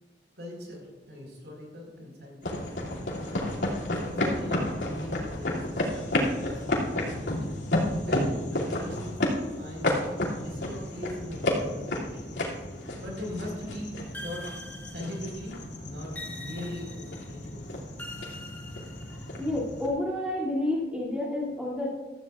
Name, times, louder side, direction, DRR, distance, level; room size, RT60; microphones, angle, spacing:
voice 1, 0.4-3.2 3.9-7.4 8.0-9.2 9.6-10.0 10.3-12.4 13.0-13.9 14.2-14.6 14.9-17.8, left 1 dB, 80° right, -1 dB, 4.6 m, -40 dB
sound 1, 2.4-19.9, left 1 dB, 85° left, 2.7 m, -31 dB
sound 2, 14.1-15.5 16.1-17.3 18.0-19.5, left 1 dB, 10° left, 1.0 m, -43 dB
voice 2, 19.4-21.9, left 1 dB, 5° right, -7 dB, 2.7 m, -29 dB
15.5 x 14.0 x 2.5 m, 1.2 s
head